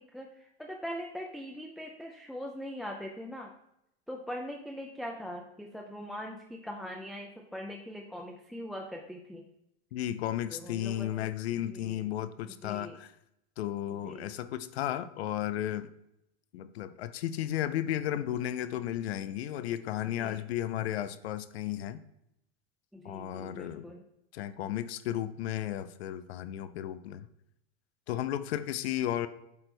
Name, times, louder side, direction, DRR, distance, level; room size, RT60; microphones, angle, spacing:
voice 1, 0.0-3.5 4.1-9.4 10.5-11.1 11.7-12.0 12.5-13.0 14.0-14.3 20.0-20.4 22.9-24.0, equal, ahead, 0 dB, 0.4 m, -41 dB
voice 2, 9.9-13.1 13.6-15.9 16.5-22.0 23.0-23.9 24.3-27.3 28.1-29.3, left 12 dB, 85° left, 13 dB, 0.6 m, -34 dB
8.3 x 4.5 x 3.3 m, 0.82 s
supercardioid pair, 130°, 31 cm